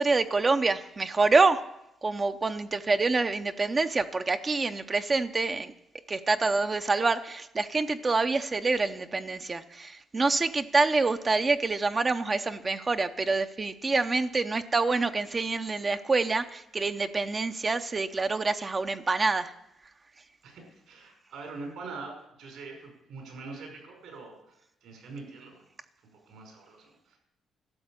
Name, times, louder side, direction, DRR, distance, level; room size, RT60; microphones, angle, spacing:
voice 1, 0.0-1.6 2.0-5.7 6.1-19.5, right 3 dB, 30° right, 8 dB, 0.7 m, -26 dB
voice 2, 20.4-25.6 26.1-27.2, right 3 dB, 80° right, 1 dB, 5.5 m, -44 dB
12.5 x 7.4 x 8.8 m, 0.83 s
cardioid pair, 90°, 0 cm